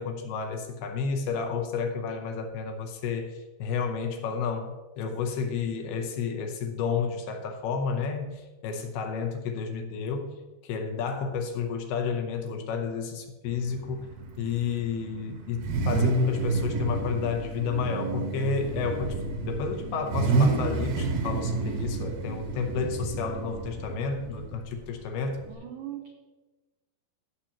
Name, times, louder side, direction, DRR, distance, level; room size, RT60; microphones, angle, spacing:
voice 1, 0.0-10.4 10.6-19.2 19.4-25.4, left 5 dB, 75° left, 4 dB, 2.6 m, -31 dB
Car / Idling / Accelerating revving vroom, 13.5-25.5, right 3 dB, 65° right, 2.7 m, -30 dB
voice 2, 25.5-26.1, right 12 dB, 90° right, 2 dB, 1.8 m, -39 dB
16.5 x 7.1 x 2.9 m, 1.2 s
omnidirectional pair, 5.1 m